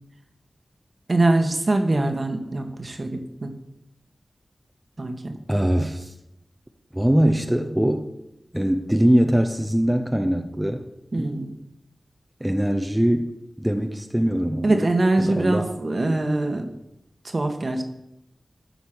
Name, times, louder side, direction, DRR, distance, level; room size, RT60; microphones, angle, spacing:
voice 1, 1.1-3.5 5.0-5.4 11.1-11.6 14.6-16.7 17.2-17.8, right 2 dB, 50° right, 5 dB, 1.5 m, -23 dB
voice 2, 5.5-6.1 6.9-8.1 8.5-10.9 11.2-11.3 12.4-14.8 15.2-15.7, equal, 10° right, 5 dB, 0.9 m, -22 dB
12.5 x 5.3 x 6.1 m, 0.83 s
cardioid pair, 50°, 0 cm